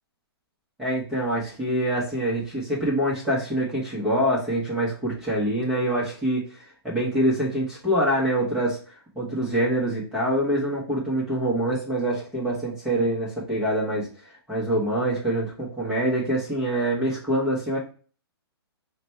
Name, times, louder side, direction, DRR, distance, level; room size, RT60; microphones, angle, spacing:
voice 1, 0.8-6.4 6.8-8.8 9.1-14.1 14.5-17.8, right 1 dB, 5° right, -7 dB, 0.9 m, -25 dB
4.1 x 2.2 x 4.2 m, 0.39 s
hypercardioid pair, 160°, 13 cm